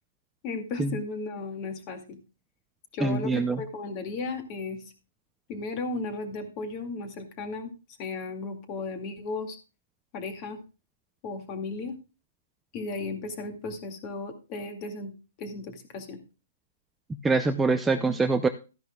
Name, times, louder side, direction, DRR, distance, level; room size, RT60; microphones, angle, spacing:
voice 1, 0.4-2.2 2.9-4.8 5.5-7.7 8.0-9.6 10.1-10.6 11.2-12.0 12.7-15.1 15.4-16.2, left 3 dB, 30° left, 6 dB, 2.2 m, -35 dB
voice 2, 3.0-3.6 17.2-18.5, right 3 dB, 5° right, 7 dB, 0.5 m, -24 dB
13.5 x 10.5 x 2.3 m, 0.31 s
hypercardioid pair, 155°, 0 cm